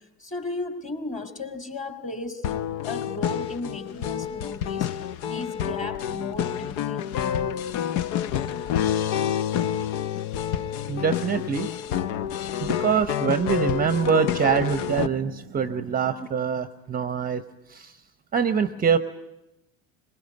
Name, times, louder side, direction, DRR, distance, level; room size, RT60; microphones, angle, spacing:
voice 1, 0.2-2.6 2.8-4.9 5.2-7.1, left 2 dB, 20° left, 8 dB, 2.9 m, -35 dB
sound 1, 2.4-15.1, left 9 dB, 50° left, 0.8 m, -28 dB
voice 2, 10.9-11.7 12.6-17.4 17.7-18.0 18.3-19.0, right 7 dB, 20° right, 12 dB, 0.9 m, -24 dB
22.0 x 21.0 x 9.5 m, 0.90 s
hypercardioid pair, 75°, 39 cm